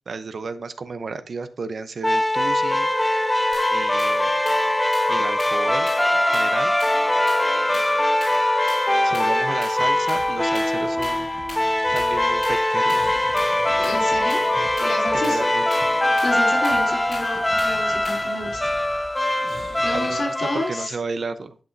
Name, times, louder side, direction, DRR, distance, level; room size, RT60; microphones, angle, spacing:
voice 1, 0.1-2.9 3.7-4.3 5.1-6.7 7.7-7.9 9.0-11.3 11.9-13.1 14.5-15.7 19.9-21.6, right 4 dB, 60° right, 11 dB, 0.7 m, -33 dB
sound 1, 2.0-20.9, left 1 dB, 10° left, 0.5 m, -22 dB
sound 2, 3.5-18.4, left 2 dB, 55° left, 2.6 m, -40 dB
sound 3, 9.9-20.2, right 2 dB, 80° right, 2.0 m, -44 dB
voice 2, 13.8-14.4 14.8-15.5 16.2-18.7 19.8-20.9, left 2 dB, 85° left, -2 dB, 3.3 m, -30 dB
10.5 x 5.7 x 2.6 m, 0.35 s
wide cardioid pair, 85°, 0 cm